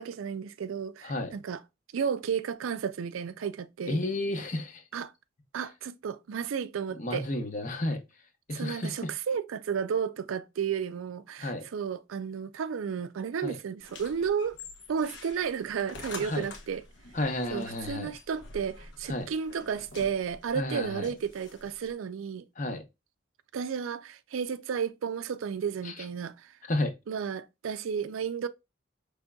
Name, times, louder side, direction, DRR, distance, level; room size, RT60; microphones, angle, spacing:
voice 1, 0.0-1.6 1.9-4.0 4.9-5.1 5.5-7.3 8.5-14.6 14.9-16.8 17.5-22.5 23.5-26.5 27.1-28.5, right 7 dB, 85° right, 0.4 m, -33 dB
voice 2, 1.0-1.3 3.9-4.8 6.9-8.0 8.5-9.1 11.4-11.6 13.4-13.6 16.2-16.5 17.1-18.1 19.1-19.3 20.5-21.1 22.6-22.8 25.8-26.0 26.7-26.9, left 1 dB, 40° left, 0.9 m, -32 dB
sound 1, 13.8-21.9, left 3 dB, 70° left, 0.9 m, -47 dB
5.1 x 3.5 x 2.3 m
head